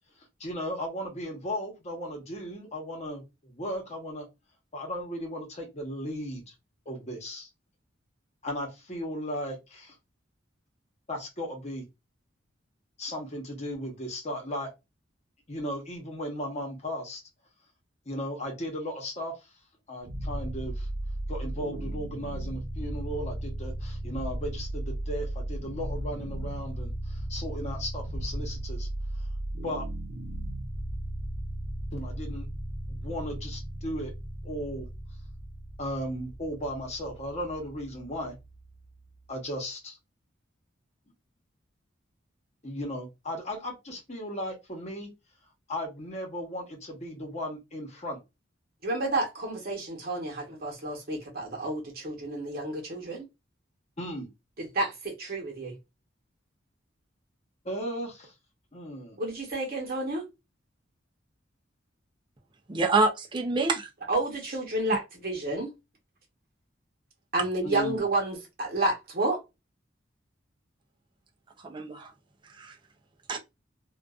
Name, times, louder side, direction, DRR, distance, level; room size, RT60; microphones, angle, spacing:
voice 1, 0.4-4.3 4.7-6.5 6.9-7.5 8.4-9.9 11.1-11.8 13.0-14.7 15.5-17.2 18.1-19.3 19.9-20.9 21.3-28.9 29.6-29.8 31.9-32.5 32.9-34.1 34.4-34.9 35.8-38.3 39.3-40.0 42.6-45.1 45.7-48.2 54.0-54.3 57.6-58.3 58.7-59.2 67.6-68.0, equal, 35° left, 0.9 m, -36 dB
sound 1, 20.0-39.1, right 1 dB, 90° right, 0.7 m, -36 dB
voice 2, 48.8-53.3 54.6-55.7 59.2-60.2 64.1-65.7 67.3-69.4, right 2 dB, 50° right, 1.0 m, -30 dB
voice 3, 62.7-63.9 71.6-72.1 72.6-72.8 73.3-73.4, right 3 dB, 25° right, 0.5 m, -26 dB
2.5 x 2.3 x 2.3 m
head